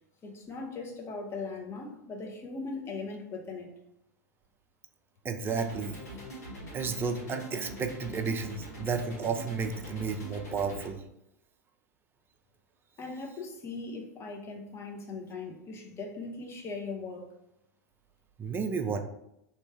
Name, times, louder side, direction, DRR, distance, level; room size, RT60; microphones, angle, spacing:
voice 1, 0.2-3.7 13.0-17.3, left 3 dB, 30° left, 1.0 m, -39 dB
voice 2, 5.2-5.9 6.7-11.0 18.4-19.0, right 5 dB, 25° right, 0.5 m, -32 dB
sound 1, 5.5-10.9, equal, 75° left, 1.5 m, -43 dB
3.3 x 3.1 x 4.4 m
figure-of-eight pair, 90°, 9 cm